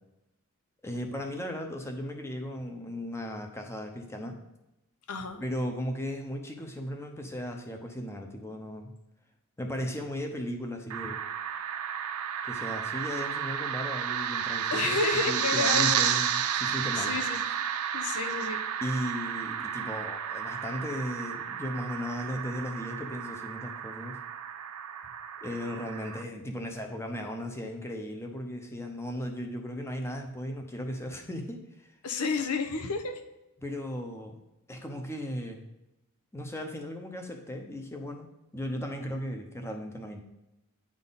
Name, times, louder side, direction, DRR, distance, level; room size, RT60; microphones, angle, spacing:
voice 1, 0.8-4.4 5.4-8.9 9.6-11.2 12.4-15.0 15.3-17.2 18.8-24.2 25.4-32.0 33.6-34.4 34.7-35.6 36.3-40.2, equal, 10° left, 3 dB, 0.7 m, -36 dB
voice 2, 5.1-5.4 14.7-16.2 16.9-17.4 17.9-18.6 32.0-33.1, left 4 dB, 85° left, 7 dB, 0.8 m, -31 dB
sound 1, 10.9-26.2, right 8 dB, 75° right, 0.5 m, -32 dB
9.4 x 3.7 x 4.0 m, 0.94 s
head